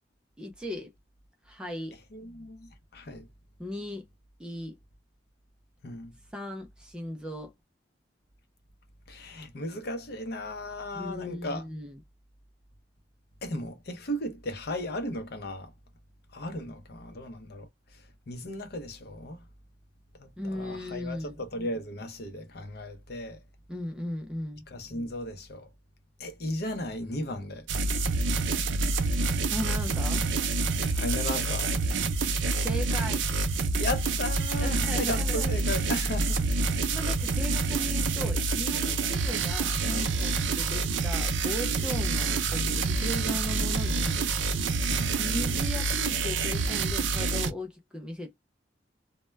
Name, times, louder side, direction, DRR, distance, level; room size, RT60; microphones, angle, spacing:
voice 1, 0.4-0.9 1.4-2.0 3.6-4.0 4.4-4.8 6.3-7.5 10.9-12.0 20.4-21.4 23.7-24.6 29.5-30.2 32.5-33.2 34.6-35.5 36.9-44.3 45.1-48.3, left 1 dB, 5° right, 0.3 m, -37 dB
voice 2, 2.1-3.3 5.8-6.1 9.1-11.6 13.4-15.7 16.3-17.7 18.3-19.4 20.2-23.4 24.7-25.7 26.2-27.7 30.9-31.7 33.8-36.4 44.9-45.2, left 1 dB, 60° left, 0.6 m, -35 dB
sound 1, 27.7-47.5, right 3 dB, 85° right, 0.4 m, -27 dB
2.1 x 2.1 x 3.0 m
head